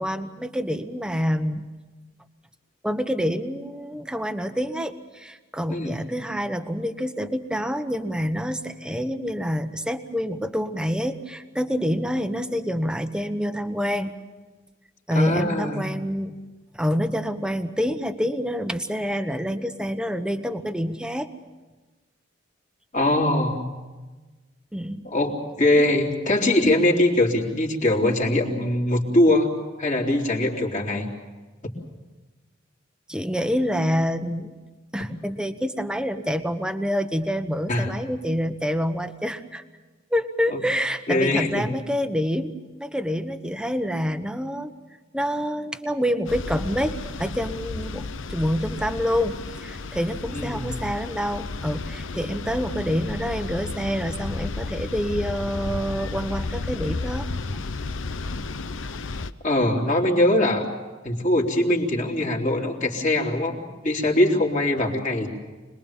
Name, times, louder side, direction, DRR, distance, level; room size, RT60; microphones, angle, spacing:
voice 1, 0.0-1.6 2.8-14.1 15.1-16.4 16.7-21.3 24.7-25.0 33.1-34.6 34.9-39.6 40.1-42.5 42.8-44.7 45.1-57.3, equal, 5° right, 8 dB, 1.1 m, -27 dB
voice 2, 5.7-6.0 15.1-16.0 22.9-23.7 25.0-29.5 29.8-31.1 37.7-37.9 40.5-40.6 41.1-41.7 50.3-50.7 59.4-60.7 61.0-65.3, left 1 dB, 40° left, 0 dB, 3.4 m, -22 dB
sound 1, 46.3-59.3, left 3 dB, 80° left, 0.8 m, -33 dB
26.0 x 21.0 x 7.3 m, 1.2 s
head